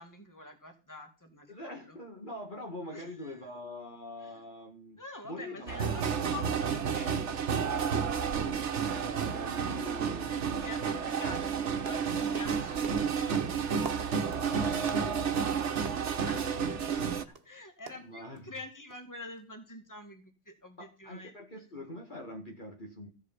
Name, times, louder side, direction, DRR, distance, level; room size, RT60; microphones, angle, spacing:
voice 1, 0.0-2.0 2.9-3.5 4.2-4.4 5.0-7.2 10.6-13.7 16.2-21.3, left 2 dB, 15° left, 5 dB, 2.2 m, -47 dB
voice 2, 1.5-6.1 8.2-8.6 8.9-10.9 14.4-15.9 16.3-17.2 18.0-18.5 20.8-23.1, left 1 dB, 45° left, 0 dB, 2.1 m, -44 dB
sound 1, 5.7-17.2, right 6 dB, 80° right, 1.4 m, -31 dB
sound 2, 9.3-9.6 9.9-10.1 10.4-17.5 17.9-18.6 18.9-19.0 19.4-19.5, right 3 dB, 55° right, 1.6 m, -48 dB
15.0 x 8.3 x 5.8 m, 0.33 s
omnidirectional pair, 1.2 m